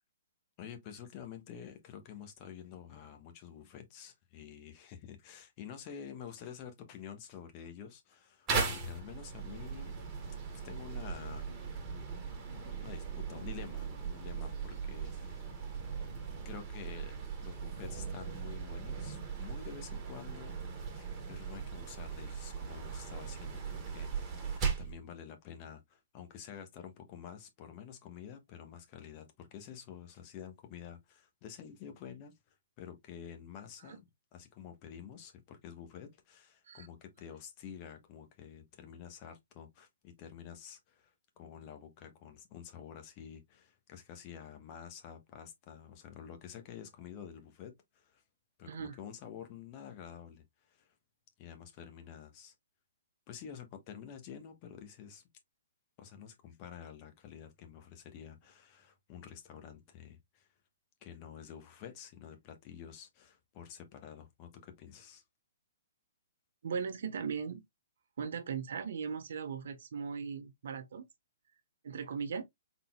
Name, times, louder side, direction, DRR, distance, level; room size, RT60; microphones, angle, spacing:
voice 1, 0.6-9.9 10.6-11.5 12.8-15.5 16.4-32.3 32.8-48.2 48.6-50.9 51.4-52.5 53.3-55.2 56.0-60.5 61.0-65.2, left 8 dB, 35° left, 1.2 m, -49 dB
sound 1, 8.5-25.0, right 5 dB, 25° right, 1.8 m, -39 dB
voice 2, 48.7-49.0 66.6-67.6 68.2-71.0 71.8-72.4, right 6 dB, 65° right, 0.9 m, -38 dB
4.0 x 3.8 x 2.3 m
hypercardioid pair, 130°, 0 cm